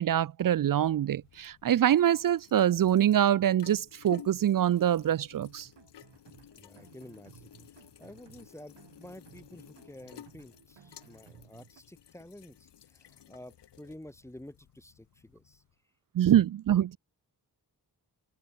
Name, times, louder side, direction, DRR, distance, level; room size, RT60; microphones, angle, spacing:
voice 1, 0.0-5.7 16.1-17.0, right 11 dB, 55° right, 0.4 m, -25 dB
sound 1, 0.7-15.7, left 10 dB, 85° left, 1.1 m, -54 dB
sound 2, 5.6-11.8, right 7 dB, 85° right, 3.3 m, -58 dB
voice 2, 6.5-15.6, left 1 dB, 5° left, 2.1 m, -50 dB
cardioid pair, 65°, 41 cm